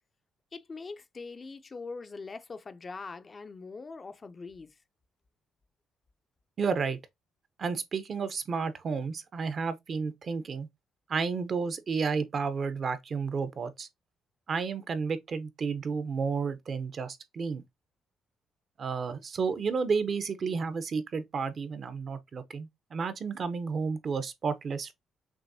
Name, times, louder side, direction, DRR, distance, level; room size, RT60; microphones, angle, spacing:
voice 1, 0.5-4.8, left 4 dB, 35° left, 0.5 m, -42 dB
voice 2, 6.6-7.0 7.6-10.7 11.1-13.9 14.5-17.6 18.8-24.9, right 5 dB, 50° right, 0.7 m, -31 dB
6.1 x 2.6 x 2.7 m
cardioid pair, 90°, 0 cm